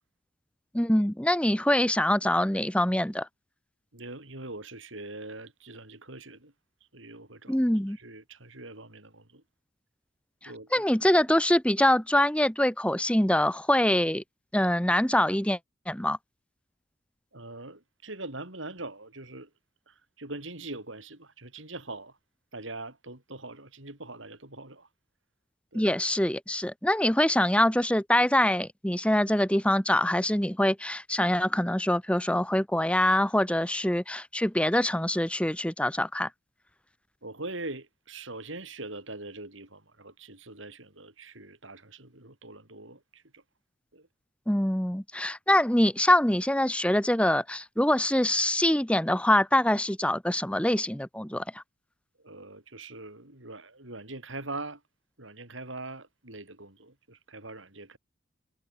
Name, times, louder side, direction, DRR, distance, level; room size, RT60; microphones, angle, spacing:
voice 1, 0.7-3.3 7.5-8.0 10.7-14.2 14.5-15.6 15.9-16.2 25.7-36.3 44.5-51.6, left 1 dB, 5° left, 1.2 m, -24 dB
voice 2, 3.9-6.5 6.9-9.4 10.4-10.8 17.3-19.5 19.9-22.2 22.5-24.9 25.7-25.9 37.2-43.4 43.9-44.1 52.2-54.8 55.2-58.0, right 2 dB, 75° right, 6.7 m, -42 dB
head